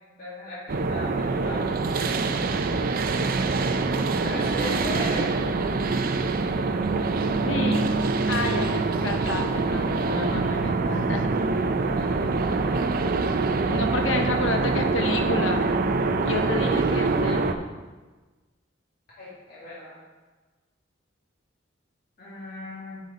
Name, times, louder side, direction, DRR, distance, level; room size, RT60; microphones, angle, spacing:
voice 1, 0.2-1.8 4.2-5.3 13.8-14.4 19.2-20.0 22.2-23.0, left 1 dB, 50° left, -8 dB, 2.1 m, -37 dB
sound 1, 0.7-17.5, right 3 dB, 50° right, 0.5 m, -25 dB
voice 2, 7.4-7.9 8.3-11.3 13.7-15.6 16.2-17.6, left 2 dB, 75° left, 5 dB, 0.9 m, -30 dB
8.1 x 6.3 x 4.2 m, 1.3 s
head